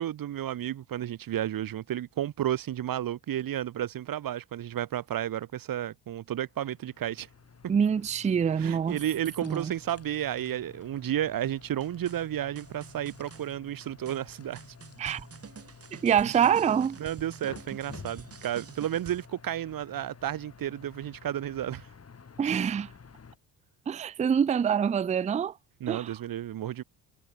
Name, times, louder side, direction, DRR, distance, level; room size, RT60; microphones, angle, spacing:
voice 1, 0.0-7.3 8.6-14.6 17.0-21.9 25.8-26.8, right 11 dB, 55° right, 1.4 m, -32 dB
sound 1, 6.5-23.4, left 5 dB, 40° left, 5.6 m, -51 dB
voice 2, 7.7-9.0 9.4-9.7 15.0-15.2 16.0-17.0 22.4-22.9 23.9-25.5 25.9-26.1, right 8 dB, 20° right, 0.4 m, -25 dB
sound 2, 11.4-19.3, right 6 dB, 35° right, 2.1 m, -48 dB
supercardioid pair, 75°, 39 cm